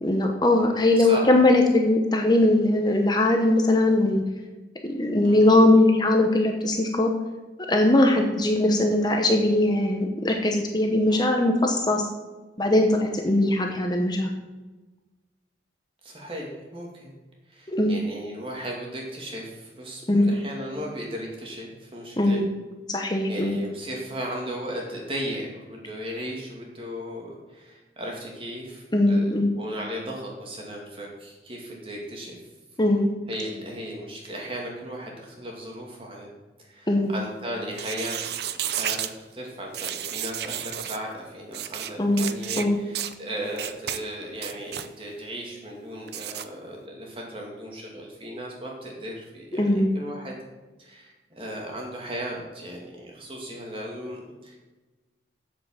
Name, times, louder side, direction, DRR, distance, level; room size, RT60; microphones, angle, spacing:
voice 1, 0.0-4.2 4.8-7.1 7.7-12.1 12.6-14.3 17.7-17.9 20.1-20.4 22.2-22.5 22.9-23.6 28.9-29.5 32.8-33.1 36.9-37.1 42.0-42.2 42.6-42.8 49.6-49.9, left 1 dB, 25° left, 3 dB, 0.9 m, -20 dB
voice 2, 5.2-5.6 11.1-11.3 16.0-17.1 17.5-22.4 23.0-32.4 33.3-36.3 36.6-50.4 50.8-54.6, equal, 30° right, -1 dB, 2.4 m, -36 dB
sound 1, 37.7-39.1 39.7-41.0 41.5-41.9 42.2-42.6 42.9-43.1 43.6-44.0 44.3-44.9 46.1-46.4, right 11 dB, 65° right, 0.6 m, -32 dB
7.7 x 7.6 x 7.4 m, 1.2 s
head